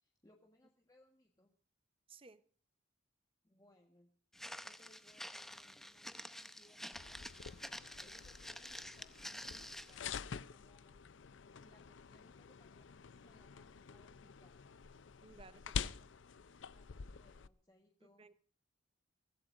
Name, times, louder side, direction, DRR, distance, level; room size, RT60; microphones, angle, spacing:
voice 1, 0.0-1.5 3.4-4.1 4.6-11.0 11.6-14.6 16.6-18.3, left 1 dB, 20° left, 1.4 m, -69 dB
voice 2, 2.1-2.4 15.2-15.9 18.2-18.3, right 4 dB, 30° right, 0.9 m, -58 dB
Walk footsteps, 4.3-10.0, left 1 dB, ahead, 0.7 m, -49 dB
sound 1, 6.9-17.5, left 6 dB, 75° left, 0.6 m, -47 dB
24.0 x 16.0 x 2.6 m
head